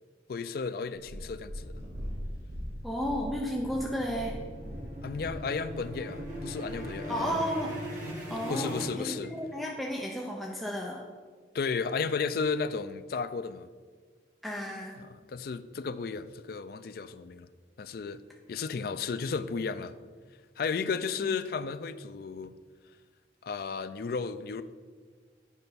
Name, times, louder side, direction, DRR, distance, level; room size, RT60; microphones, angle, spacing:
voice 1, 0.3-1.8 5.0-7.5 8.5-9.3 11.5-13.7 15.0-17.5 17.8-18.2 18.5-19.9 20.6-22.6 23.4-24.6, left 5 dB, 55° left, 12 dB, 0.3 m, -33 dB
Purr, 0.9-7.3 8.0-8.1, equal, 65° right, 1.9 m, -41 dB
sound 1, 2.4-9.7, right 1 dB, 45° right, 1.8 m, -40 dB
voice 2, 2.8-4.4 7.1-7.7 8.3-11.0 14.4-15.0 21.2-21.3, equal, ahead, -2 dB, 0.5 m, -33 dB
9.0 x 5.3 x 4.1 m, 1.6 s
head